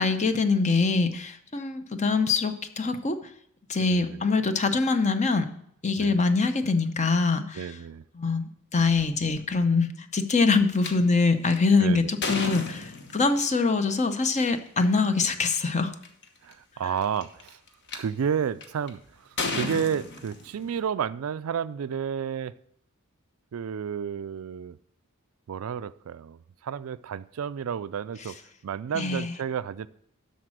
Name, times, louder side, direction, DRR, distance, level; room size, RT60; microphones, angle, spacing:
voice 1, 0.0-3.2 3.7-5.5 5.8-7.6 8.2-15.9 28.9-29.3, left 4 dB, 35° left, 0.7 m, -24 dB
voice 2, 3.9-4.2 6.0-6.2 7.5-8.0 11.8-12.1 16.4-17.6 17.9-22.5 23.5-24.8 25.5-28.4 28.6-29.9, right 7 dB, 70° right, 0.4 m, -31 dB
sound 1, 10.8-10.9 11.5-13.4 14.7-14.8 15.5-15.6 15.8-16.2 17.0-18.0 18.6-18.9 19.4-20.8, left 3 dB, 55° left, 1.2 m, -32 dB
12.5 x 4.2 x 6.2 m
head